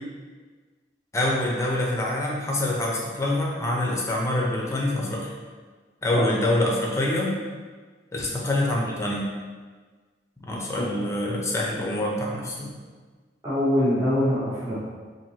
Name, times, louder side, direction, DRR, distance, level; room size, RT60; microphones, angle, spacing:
voice 1, 1.1-5.3 6.0-7.3 8.1-9.3 10.5-12.7, left 1 dB, 15° left, -2 dB, 0.6 m, -25 dB
voice 2, 13.4-14.9, left 1 dB, 15° right, -11 dB, 0.7 m, -23 dB
4.5 x 2.7 x 2.8 m, 1.4 s
head